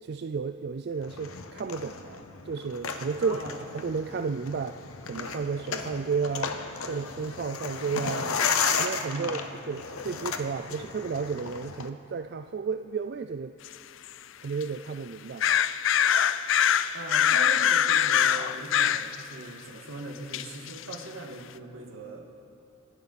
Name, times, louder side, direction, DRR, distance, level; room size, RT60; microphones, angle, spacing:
voice 1, 0.0-3.4 3.7-6.6 6.9-8.3 8.7-9.4 9.7-13.5 14.4-15.5, right 5 dB, 50° right, 8 dB, 0.3 m, -32 dB
sound 1, 1.0-11.9, left 5 dB, 90° left, 0.9 m, -34 dB
voice 2, 3.2-3.7 9.1-9.4 16.9-22.3, right 2 dB, 75° right, 2 dB, 1.9 m, -40 dB
sound 2, 13.7-13.8 14.1-14.2 14.6-14.7 15.4-19.2 20.3-21.0, left 9 dB, 65° left, 0.4 m, -23 dB
28.0 x 11.0 x 4.1 m, 2.6 s
head